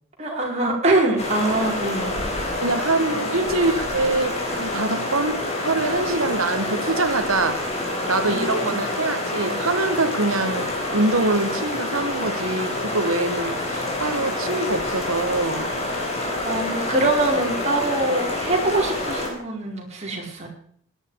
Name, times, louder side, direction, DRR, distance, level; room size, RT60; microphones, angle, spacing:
voice 1, 0.2-2.2 8.2-8.8 16.4-20.5, right 2 dB, 30° right, 4.6 m, -23 dB
sound 1, 1.2-19.3, left 1 dB, 30° left, 4.4 m, -27 dB
voice 2, 2.6-7.7 8.1-15.7, right 2 dB, 85° right, 1.8 m, -24 dB
18.5 x 11.0 x 4.8 m
head